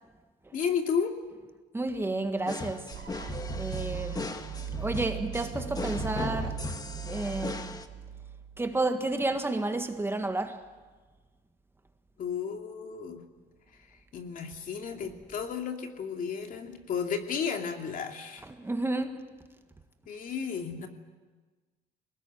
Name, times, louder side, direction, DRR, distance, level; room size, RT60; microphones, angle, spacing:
voice 1, 0.5-1.2 12.2-13.2 13.7-18.5 20.1-20.9, left 6 dB, 55° left, 2.7 m, -33 dB
voice 2, 1.7-2.9 3.5-4.4 4.8-6.6 6.8-7.8 8.6-10.7 15.1-15.2 18.4-19.3, right 2 dB, 15° right, 1.7 m, -31 dB
sound 1, 2.5-7.9, left 3 dB, 20° left, 1.6 m, -37 dB
sound 2, 2.9-8.8, right 9 dB, 70° right, 1.5 m, -39 dB
22.0 x 19.0 x 9.4 m
cardioid pair, 110°, 17 cm